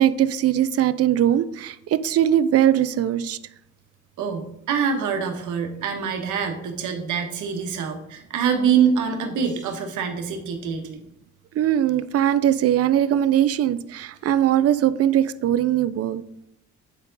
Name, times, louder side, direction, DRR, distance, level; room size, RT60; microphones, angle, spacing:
voice 1, 0.0-3.4 11.5-16.2, right 11 dB, 55° right, 14 dB, 0.5 m, -20 dB
voice 2, 4.2-11.0, right 7 dB, 80° right, 5 dB, 1.2 m, -25 dB
8.5 x 4.4 x 4.0 m, 0.78 s
cardioid pair, 90°, 30 cm